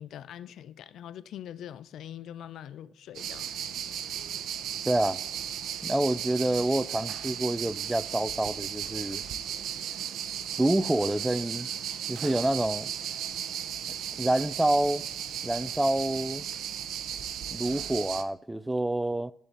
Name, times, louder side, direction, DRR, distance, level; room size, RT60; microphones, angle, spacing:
voice 1, 0.0-3.5, left 10 dB, 75° left, 0.3 m, -43 dB
sound 1, 3.1-18.2, right 9 dB, 80° right, 0.6 m, -35 dB
voice 2, 4.9-5.2 5.8-9.2 10.6-11.7 12.1-12.9 14.2-15.0 15.4-16.4 17.5-19.3, right 1 dB, 10° right, 0.3 m, -27 dB
11.0 x 4.1 x 7.2 m
cardioid pair, 105°, 0 cm